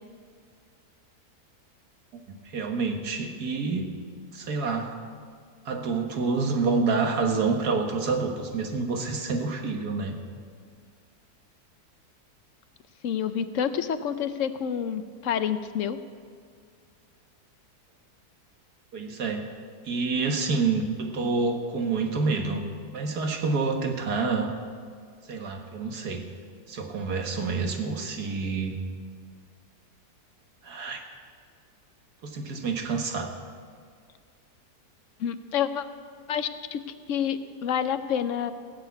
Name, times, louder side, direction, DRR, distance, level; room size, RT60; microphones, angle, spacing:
voice 1, 2.3-3.9 4.3-4.9 5.7-10.2 18.9-19.5 19.9-22.6 22.9-24.5 25.3-26.2 26.7-28.8 30.6-31.0 32.2-33.3, right 4 dB, 75° right, 4 dB, 1.9 m, -28 dB
voice 2, 13.0-16.0 35.2-35.9 36.3-36.8 37.1-38.5, left 8 dB, 60° left, 11 dB, 0.9 m, -28 dB
16.5 x 6.7 x 8.4 m, 2.1 s
omnidirectional pair, 1.7 m